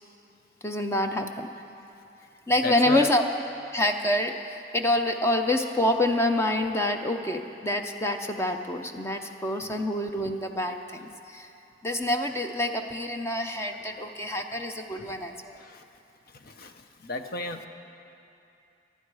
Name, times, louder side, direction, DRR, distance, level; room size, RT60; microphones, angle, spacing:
voice 1, 0.6-1.5 2.5-3.4 3.7-11.5 11.8-15.6, left 1 dB, 15° left, 4 dB, 0.6 m, -27 dB
voice 2, 2.6-3.1 15.0-15.1 15.5-15.8 16.3-17.7, left 3 dB, 50° left, 7 dB, 0.8 m, -34 dB
24.5 x 11.0 x 4.8 m, 2.7 s
head